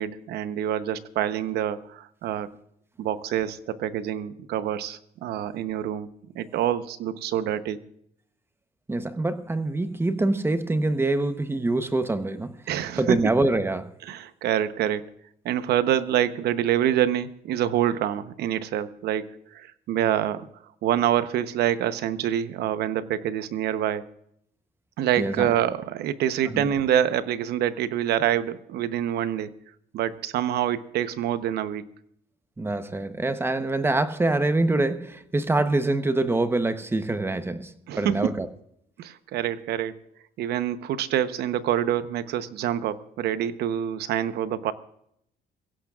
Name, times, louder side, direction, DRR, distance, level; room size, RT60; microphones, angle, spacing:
voice 1, 0.0-2.5 3.0-6.1 6.3-7.8 12.7-13.2 14.1-15.0 15.4-20.5 20.8-24.1 25.0-29.5 29.9-31.8 37.9-38.3 39.0-39.9 40.4-44.7, right 10 dB, 75° right, 0.9 m, -26 dB
voice 2, 8.9-12.6 13.0-13.9 25.2-25.5 26.5-26.7 32.6-38.5, right 2 dB, 15° right, 1.0 m, -25 dB
22.5 x 16.5 x 2.5 m
cardioid pair, 110°, 17 cm